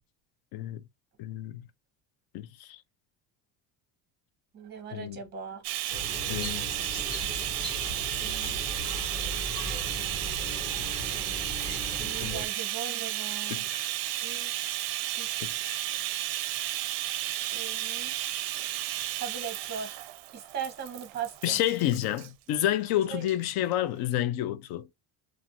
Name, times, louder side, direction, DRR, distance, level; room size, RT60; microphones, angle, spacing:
voice 1, 1.2-1.6 2.3-2.8 4.9-5.3 6.3-6.6 12.2-12.4 13.5-13.9 15.4-15.8 21.4-24.9, left 12 dB, 55° left, 0.5 m, -30 dB
voice 2, 4.5-5.6 8.2-8.6 12.0-13.6 14.2-14.5 15.2-15.3 17.5-18.1 19.2-20.0 20.3-21.6 23.1-23.2, right 7 dB, 20° right, 0.7 m, -39 dB
Bathtub (filling or washing), 5.6-22.3 23.2-23.4 23.7-23.8, right 14 dB, 55° right, 0.5 m, -33 dB
sound 1, 5.9-12.5, equal, 10° left, 0.6 m, -38 dB
2.5 x 2.5 x 2.8 m
cardioid pair, 155°, 46 cm